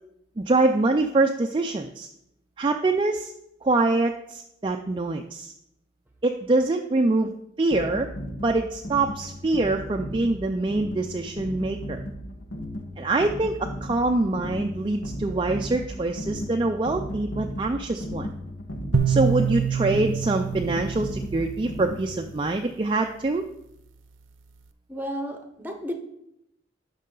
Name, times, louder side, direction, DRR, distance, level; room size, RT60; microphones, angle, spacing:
voice 1, 0.4-2.1 2.6-3.3 3.6-5.5 6.2-7.3 7.6-8.1 8.4-12.0 13.0-18.3 19.1-23.4, right 2 dB, 25° right, 4 dB, 0.4 m, -24 dB
sound 1, 7.7-22.4, equal, 80° left, 1.3 m, -35 dB
sound 2, 18.9-22.2, right 7 dB, 85° right, 0.6 m, -27 dB
voice 2, 24.9-26.0, equal, 10° right, 5 dB, 0.9 m, -33 dB
12.0 x 5.5 x 3.9 m, 0.81 s
head